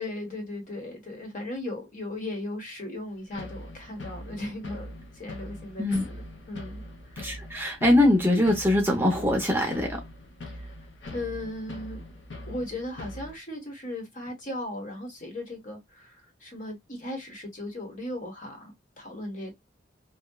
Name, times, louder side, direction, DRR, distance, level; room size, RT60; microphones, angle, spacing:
voice 1, 0.0-6.8 10.5-10.7 11.1-12.0 12.5-19.6, left 1 dB, 45° left, 1.1 m, -37 dB
sound 1, 3.3-13.4, left 1 dB, 70° left, 0.7 m, -42 dB
voice 2, 7.2-10.0, left 1 dB, 10° right, 0.6 m, -22 dB
2.7 x 2.1 x 2.2 m
head